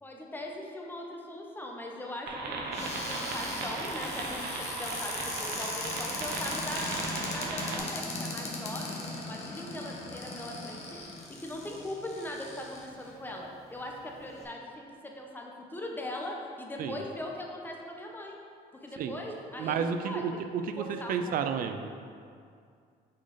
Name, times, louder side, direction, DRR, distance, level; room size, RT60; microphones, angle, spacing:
voice 1, 0.0-7.0 7.3-10.8 11.4-18.4 18.8-20.4 20.8-21.5, left 1 dB, 10° left, 0 dB, 0.8 m, -40 dB
sound 1, 2.3-7.8, right 3 dB, 75° right, 0.9 m, -36 dB
Cupboard open or close, 2.7-13.1 13.7-13.8 14.1-14.4, left 2 dB, 40° left, 1.1 m, -39 dB
voice 2, 19.6-22.1, right 6 dB, 55° right, 8 dB, 0.4 m, -32 dB
6.3 x 3.9 x 4.1 m, 2.3 s
cardioid pair, 110°, 17 cm